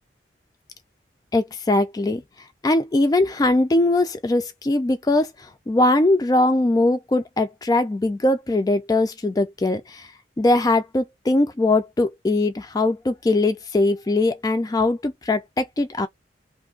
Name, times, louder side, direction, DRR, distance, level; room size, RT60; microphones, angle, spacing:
voice 1, 1.3-2.2 2.6-10.1 10.4-16.1, left 2 dB, 20° left, 0.3 m, -21 dB
2.6 x 2.4 x 3.7 m
head